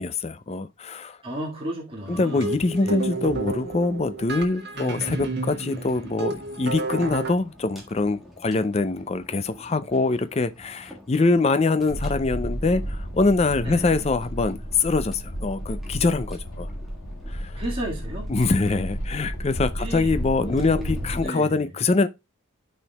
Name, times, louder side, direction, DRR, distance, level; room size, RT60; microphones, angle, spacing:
voice 1, 0.0-1.2 2.1-16.7 17.3-17.5 18.3-22.1, left 3 dB, 30° left, 0.4 m, -24 dB
voice 2, 1.2-2.5 2.8-3.0 13.6-14.0 17.6-18.3 19.8-20.1 20.4-21.7, right 1 dB, 25° right, 1.8 m, -33 dB
sound 1, 2.1-7.3, right 3 dB, 50° right, 1.5 m, -31 dB
sound 2, 5.7-21.3, left 1 dB, ahead, 1.6 m, -49 dB
sound 3, 11.9-21.2, equal, 85° left, 1.6 m, -32 dB
13.0 x 4.5 x 2.3 m
head